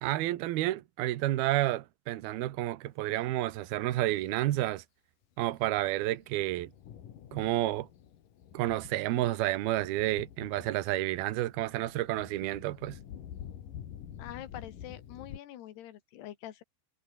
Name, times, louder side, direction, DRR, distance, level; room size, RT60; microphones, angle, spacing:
voice 1, 0.0-4.8 5.4-6.7 7.3-7.9 8.5-13.0, right 15 dB, 75° right, 3.1 m, -30 dB
Thunder, 5.7-15.4, left 9 dB, 60° left, 3.5 m, -48 dB
voice 2, 14.2-16.6, left 12 dB, 85° left, 3.8 m, -45 dB
omnidirectional pair, 4.6 m